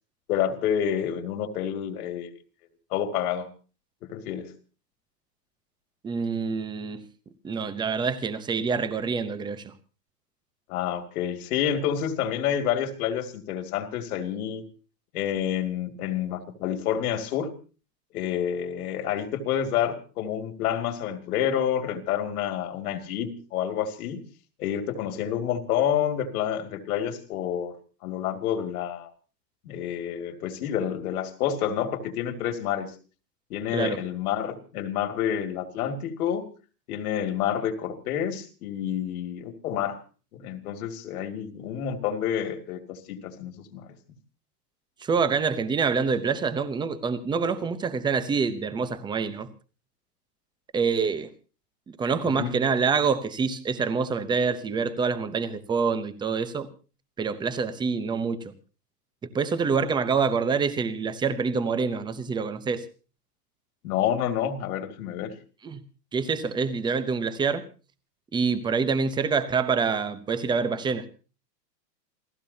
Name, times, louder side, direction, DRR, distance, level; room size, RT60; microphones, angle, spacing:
voice 1, 0.3-2.3 2.9-3.5 4.0-4.5 10.7-14.6 15.1-17.5 18.1-24.2 24.6-27.7 28.0-29.1 29.7-32.9 33.5-36.4 36.9-40.0 40.3-43.9 52.3-52.5 63.8-65.3, left 9 dB, 60° left, 2.5 m, -28 dB
voice 2, 6.0-7.0 7.4-9.7 33.7-34.0 45.0-49.5 50.7-51.3 51.9-56.7 57.2-58.5 59.2-62.8 65.6-65.8 66.1-67.6 68.3-71.1, right 5 dB, 10° right, 0.8 m, -26 dB
28.0 x 15.5 x 2.8 m
supercardioid pair, 145°, 49 cm